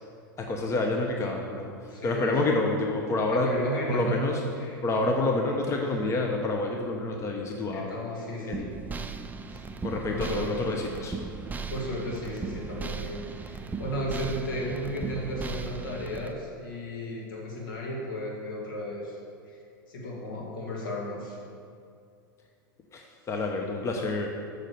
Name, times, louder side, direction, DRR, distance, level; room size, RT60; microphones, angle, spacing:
voice 1, 0.4-1.7 2.0-3.5 3.9-4.4 4.8-7.9 8.5-8.8 9.8-11.2 22.9-24.4, left 2 dB, 25° left, 2 dB, 0.9 m, -28 dB
voice 2, 1.9-2.6 3.3-4.3 4.6-4.8 7.7-8.8 9.5-9.7 10.1-10.6 11.7-19.2 19.4-19.6 19.9-21.4, equal, 75° left, -2 dB, 2.1 m, -34 dB
sound 1, 8.5-16.3, right 4 dB, 15° right, 0.5 m, -37 dB
6.5 x 6.5 x 6.6 m, 2.3 s
hypercardioid pair, 95°, 11 cm